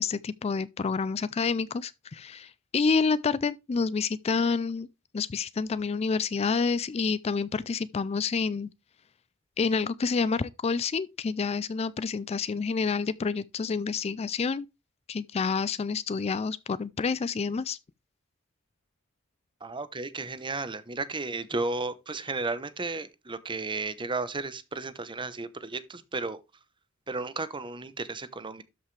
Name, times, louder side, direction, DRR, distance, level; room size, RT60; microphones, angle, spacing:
voice 1, 0.0-4.9 5.1-8.7 9.6-14.7 15.1-17.8, left 5 dB, 30° left, 0.3 m, -28 dB
voice 2, 19.6-26.4 27.1-28.6, right 3 dB, 25° right, 0.9 m, -34 dB
12.5 x 5.5 x 3.2 m
head